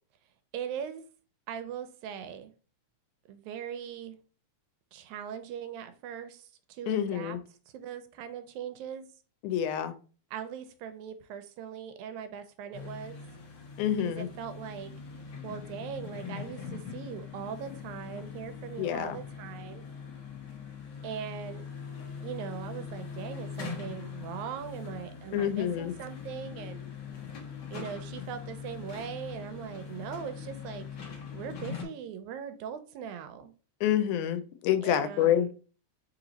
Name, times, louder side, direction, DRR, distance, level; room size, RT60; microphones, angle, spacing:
voice 1, 0.5-1.0 1.5-2.5 3.3-4.2 4.9-7.4 7.7-9.1 10.3-13.2 14.0-14.9 15.4-19.9 21.0-21.7 22.2-26.9 27.7-33.5 34.8-35.5, right 8 dB, 80° right, 1.8 m, -40 dB
voice 2, 6.9-7.4 9.4-10.0 13.8-14.3 18.8-19.2 25.3-25.9 33.8-35.5, left 10 dB, 90° left, 2.0 m, -27 dB
sound 1, 12.7-31.9, left 6 dB, 70° left, 1.0 m, -42 dB
4.6 x 2.9 x 3.9 m
omnidirectional pair, 3.4 m